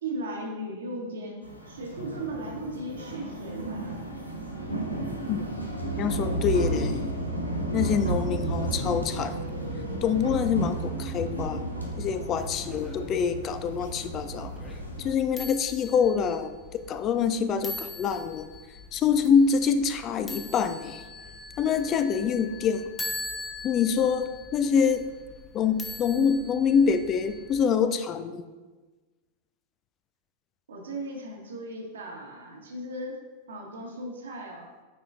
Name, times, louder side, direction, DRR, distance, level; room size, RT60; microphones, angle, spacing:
voice 1, 0.0-3.9 30.7-33.2 33.5-34.7, right 1 dB, 65° right, 0 dB, 1.3 m, -37 dB
sound 1, 1.4-15.1, right 1 dB, 90° left, 0.8 m, -32 dB
voice 2, 6.0-7.1 7.7-9.4 10.0-11.6 12.0-14.5 15.0-16.5 16.9-18.5 18.9-21.1 21.6-22.9 23.6-25.1 25.5-28.4, left 6 dB, 30° left, 10 dB, 0.3 m, -25 dB
sound 2, 12.3-27.7, left 2 dB, 15° left, 0.8 m, -42 dB
9.0 x 4.3 x 2.5 m, 1.3 s
figure-of-eight pair, 90°, 0 cm